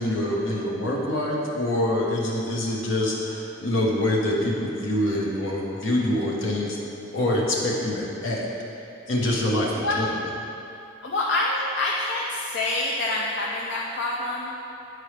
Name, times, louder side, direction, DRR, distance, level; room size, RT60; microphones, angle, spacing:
voice 1, 0.0-6.8 7.1-8.4 9.1-10.1, left 1 dB, 75° left, -3 dB, 1.1 m, -25 dB
voice 2, 9.8-10.2 11.0-14.5, left 2 dB, 60° left, -3 dB, 0.5 m, -26 dB
9.3 x 4.6 x 3.3 m, 2.7 s
head